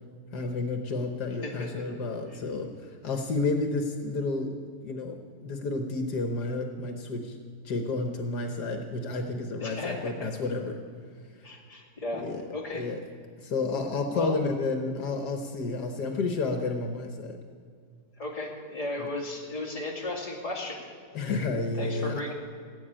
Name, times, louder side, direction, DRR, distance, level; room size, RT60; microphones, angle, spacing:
voice 1, 0.3-4.6 4.8-7.4 7.6-10.7 12.1-12.4 12.7-13.0 13.4-17.4 19.0-19.1 21.1-22.2, left 3 dB, 70° left, 5 dB, 1.7 m, -31 dB
voice 2, 1.4-1.8 2.3-2.4 9.6-10.3 11.4-12.9 14.1-14.4 18.2-20.8 21.8-22.3, left 2 dB, 20° left, -1 dB, 2.3 m, -35 dB
16.0 x 8.4 x 8.8 m, 2.1 s
omnidirectional pair, 1.8 m